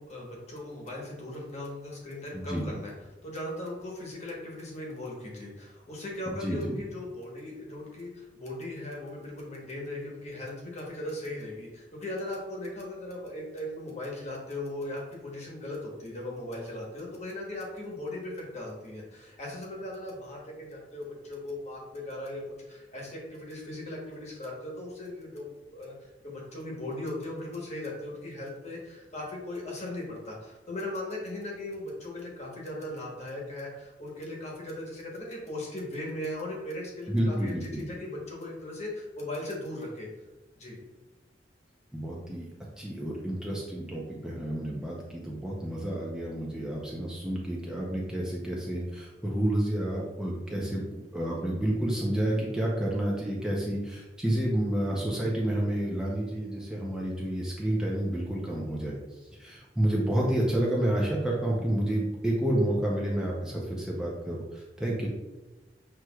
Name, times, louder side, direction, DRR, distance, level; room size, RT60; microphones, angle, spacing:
voice 1, 0.0-2.9 3.2-40.1 40.5-40.8, left 1 dB, 40° left, -2 dB, 1.1 m, -38 dB
voice 2, 2.3-2.6 6.3-6.8 37.1-37.8 41.9-42.5 42.8-58.9 59.4-65.1, right 1 dB, 5° right, -4 dB, 0.5 m, -30 dB
6.0 x 3.1 x 2.3 m, 1.1 s
head